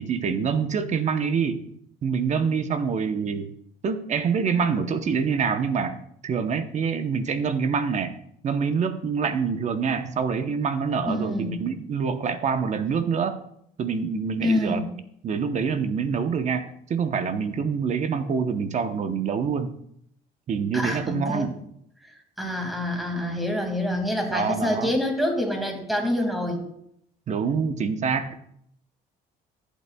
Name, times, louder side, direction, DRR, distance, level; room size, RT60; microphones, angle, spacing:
voice 1, 0.0-1.7 2.0-3.5 3.8-6.0 6.2-8.1 8.4-13.4 13.8-14.8 15.2-19.7 20.5-21.5 24.3-24.9 27.3-28.4, right 6 dB, 45° right, 9 dB, 0.9 m, -26 dB
voice 2, 11.1-11.6 14.4-14.9 20.7-21.5 22.0-26.6, left 1 dB, ahead, 2 dB, 2.1 m, -26 dB
14.5 x 8.3 x 2.3 m, 0.71 s
cardioid pair, 110°, 17 cm